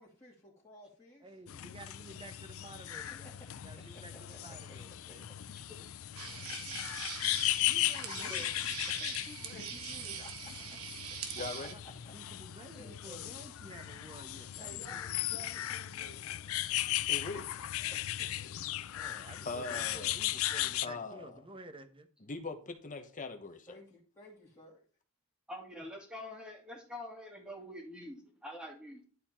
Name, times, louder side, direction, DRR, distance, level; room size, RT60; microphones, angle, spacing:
voice 1, 0.0-1.4 3.9-4.6 5.1-5.2 5.5-5.7 8.1-8.6 8.9-11.1 12.0-12.1 12.7-13.3 14.6-16.7 17.9-18.5 23.7-24.8, left 1 dB, 15° left, 2.5 m, -54 dB
voice 2, 1.2-5.3 7.7-8.5 10.0-10.2 11.7-11.8 12.1-15.7 18.9-22.1, right 2 dB, 25° right, 1.0 m, -52 dB
sound 1, 1.5-20.9, left 14 dB, 70° left, 0.4 m, -37 dB
sound 2, 6.2-11.7, right 7 dB, 85° right, 1.2 m, -43 dB
voice 3, 11.3-11.8 17.1-17.6 19.4-20.1 20.8-21.4 22.2-23.8, left 3 dB, 35° left, 1.1 m, -41 dB
voice 4, 25.5-29.0, left 1 dB, 5° right, 2.3 m, -46 dB
11.0 x 4.3 x 4.4 m
head